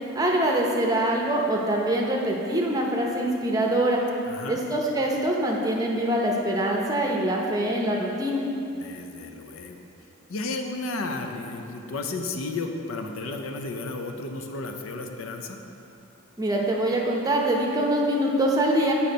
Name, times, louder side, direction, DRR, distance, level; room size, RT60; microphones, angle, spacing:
voice 1, 0.1-4.0 4.5-8.5 16.4-18.9, right 1 dB, 15° right, -1 dB, 0.7 m, -24 dB
voice 2, 4.3-4.6 8.7-9.8 10.3-15.6, left 3 dB, 75° left, 4 dB, 0.6 m, -33 dB
8.4 x 4.3 x 5.2 m, 2.8 s
head